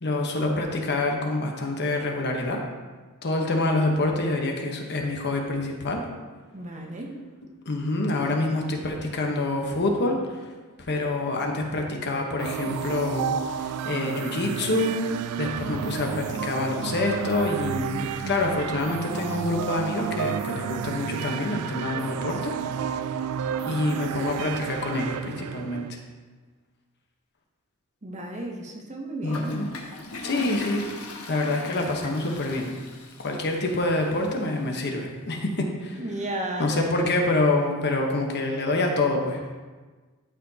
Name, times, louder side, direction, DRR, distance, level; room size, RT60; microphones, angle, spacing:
voice 1, 0.0-2.6 3.2-6.0 7.7-10.4 10.8-22.6 23.6-26.0 29.2-29.7 30.2-30.8 31.3-32.7 33.2-36.0 36.6-39.5, left 2 dB, 50° left, 2 dB, 1.0 m, -26 dB
voice 2, 6.5-7.2 23.7-24.2 28.0-29.7 36.0-37.1, right 1 dB, 30° right, 1 dB, 0.9 m, -34 dB
sound 1, 12.4-25.9, right 8 dB, 80° right, 0.3 m, -31 dB
Toilet flush, 29.3-34.3, left 3 dB, 75° left, 1.0 m, -39 dB
12.5 x 5.0 x 2.8 m, 1.3 s
head